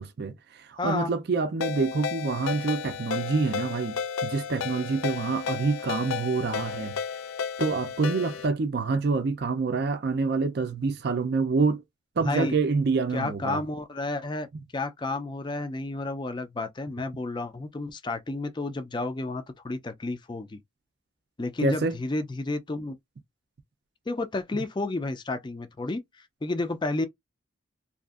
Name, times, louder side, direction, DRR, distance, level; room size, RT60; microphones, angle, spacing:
voice 1, 0.0-6.9 7.6-11.8 12.2-13.6 21.6-22.0, right 4 dB, 55° right, 0.4 m, -27 dB
voice 2, 0.8-1.1 12.2-12.6 13.1-14.5 14.7-20.6 21.4-23.0 24.1-26.0 26.4-27.1, left 2 dB, 25° left, 0.4 m, -31 dB
Ringtone, 1.6-8.5, left 7 dB, 85° left, 0.4 m, -33 dB
2.6 x 2.4 x 2.4 m
head